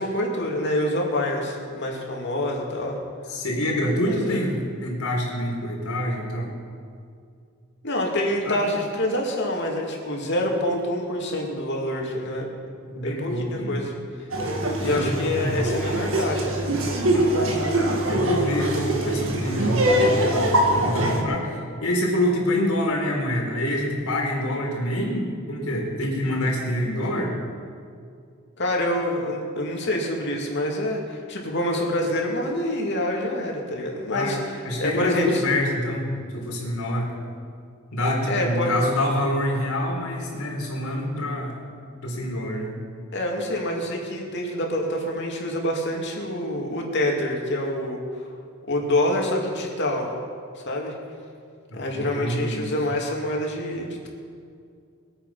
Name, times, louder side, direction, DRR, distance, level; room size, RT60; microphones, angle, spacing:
voice 1, 0.0-3.0 4.0-4.4 7.8-12.5 13.0-13.9 14.2-14.3 14.8-16.8 17.1-17.6 28.6-34.5 34.8-35.4 38.3-38.7 43.1-48.0 48.7-50.2 50.5-50.9 51.7-54.1, left 1 dB, 55° left, -1 dB, 2.7 m, -26 dB
voice 2, 3.3-6.5 8.4-8.6 12.9-13.8 14.8-15.7 18.1-21.5 21.8-27.3 34.1-36.1 36.3-37.1 37.9-41.6 42.0-42.7 51.7-52.7, left 1 dB, 85° left, -2 dB, 3.9 m, -26 dB
Laughter, 14.3-21.2, right 1 dB, 60° right, 1.9 m, -23 dB
22.5 x 9.0 x 5.8 m, 2.3 s
head